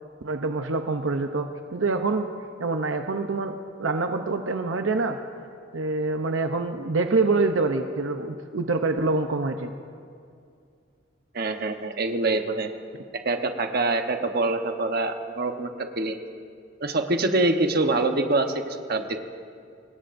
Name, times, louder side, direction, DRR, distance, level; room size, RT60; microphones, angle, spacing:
voice 1, 0.2-2.3 2.6-5.2 5.7-9.7, right 3 dB, 85° right, 6 dB, 0.7 m, -26 dB
voice 2, 11.3-12.7 13.2-15.7 16.0-16.2 16.8-19.2, right 2 dB, 55° right, 5 dB, 1.1 m, -25 dB
25.0 x 20.5 x 2.6 m, 2.4 s
head